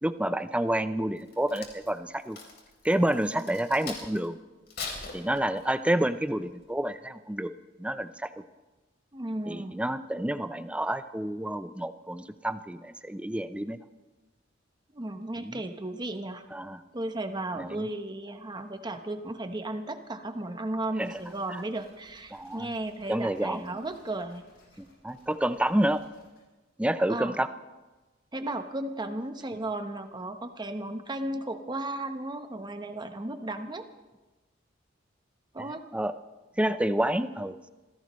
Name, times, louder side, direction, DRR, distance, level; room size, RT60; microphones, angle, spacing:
voice 1, 0.0-2.4 2.8-4.4 5.1-7.5 7.8-8.3 9.5-13.8 15.4-15.6 16.5-16.8 17.6-17.9 21.0-21.2 21.5-21.6 22.3-22.7 23.1-23.8 24.8-26.0 26.8-27.5 35.6-35.7 35.9-36.1 36.6-37.6, right 1 dB, 5° right, 11 dB, 0.5 m, -29 dB
Crack, 1.2-4.3 4.7-5.9 6.4-6.6, left 4 dB, 55° left, 3.6 m, -41 dB
voice 2, 9.1-9.8 14.9-16.4 16.9-24.4 27.1-27.4 28.3-33.9 35.5-35.8, right 2 dB, 20° right, 7 dB, 1.0 m, -35 dB
sound 1, 21.0-26.4, left 1 dB, 80° left, 7.3 m, -61 dB
26.5 x 16.0 x 3.1 m, 1.2 s
head